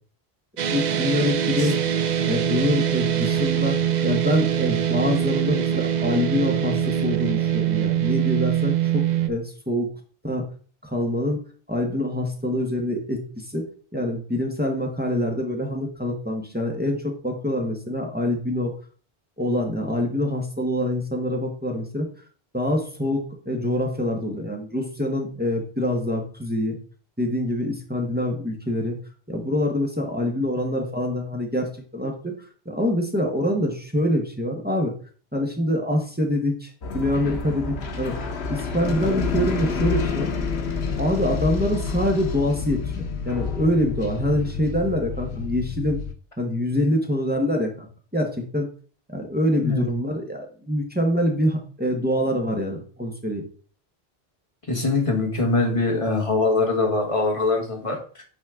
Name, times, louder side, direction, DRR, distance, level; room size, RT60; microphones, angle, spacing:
sound 1, 0.6-9.3, right 9 dB, 55° right, 0.6 m, -23 dB
voice 1, 0.7-1.8 2.2-9.9 10.2-10.4 10.8-11.4 11.7-13.6 13.9-18.7 19.4-22.1 22.5-26.8 27.2-29.0 29.3-32.3 32.6-34.9 35.3-38.1 38.5-40.3 41.0-46.0 46.4-48.7 49.1-53.4, left 1 dB, 10° right, 1 dB, 1.3 m, -25 dB
sound 2, 36.8-46.1, left 5 dB, 85° left, 1.2 m, -28 dB
voice 2, 54.7-58.0, left 3 dB, 30° left, 1 dB, 1.7 m, -22 dB
9.1 x 4.3 x 3.7 m, 0.41 s
omnidirectional pair, 1.0 m